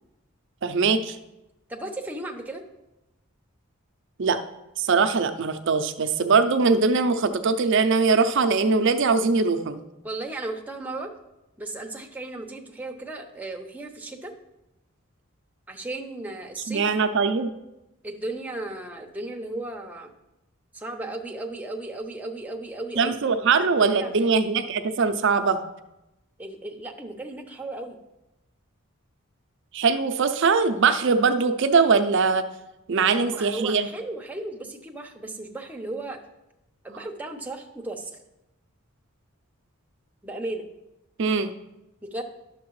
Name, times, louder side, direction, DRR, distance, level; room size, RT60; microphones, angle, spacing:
voice 1, 0.6-1.2 4.2-4.4 4.8-9.8 16.7-17.5 23.0-25.6 29.7-32.5 32.9-33.9 41.2-41.5, right 4 dB, 60° right, 8 dB, 0.5 m, -21 dB
voice 2, 1.7-2.7 10.0-11.1 11.6-14.3 15.7-16.9 18.0-20.1 20.7-24.3 26.4-28.0 33.2-36.2 36.8-38.1 40.2-40.7 42.0-42.2, right 2 dB, 5° right, 2 dB, 0.7 m, -35 dB
11.0 x 6.6 x 3.1 m, 0.94 s
head